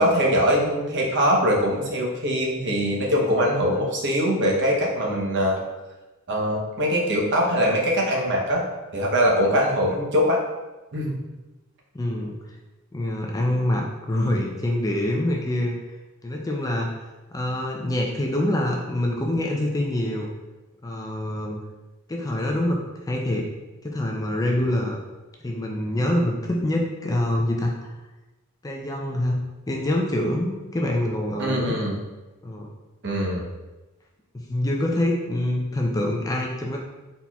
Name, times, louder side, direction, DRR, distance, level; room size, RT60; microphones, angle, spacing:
voice 1, 0.0-5.6 6.3-8.6 8.9-10.4 10.9-11.1 31.4-31.9 33.0-33.5, equal, 50° right, -1 dB, 0.8 m, -22 dB
voice 2, 11.9-12.4 12.9-15.8 16.2-16.9 17.3-20.3 20.8-21.6 22.1-23.5 23.8-25.0 25.4-27.9 28.6-31.7 32.4-32.7 34.5-36.8, left 1 dB, 15° left, 0 dB, 0.4 m, -25 dB
4.1 x 4.1 x 2.3 m, 1.1 s
head